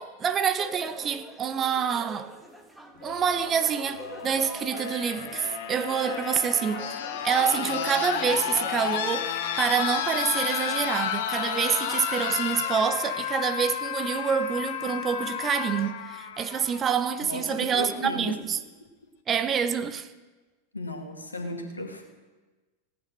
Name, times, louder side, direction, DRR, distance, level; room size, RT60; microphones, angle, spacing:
voice 1, 0.0-2.3 3.0-18.6 19.3-20.1, right 7 dB, 25° right, 0.8 m, -27 dB
sound 1, 0.6-9.5, right 1 dB, 5° right, 1.5 m, -46 dB
sound 2, 3.0-17.0 18.2-18.3, left 8 dB, 50° left, 1.1 m, -32 dB
voice 2, 17.2-18.4 20.7-22.0, left 1 dB, 80° left, 2.3 m, -35 dB
17.0 x 9.7 x 6.6 m
figure-of-eight pair, 90°, 0 cm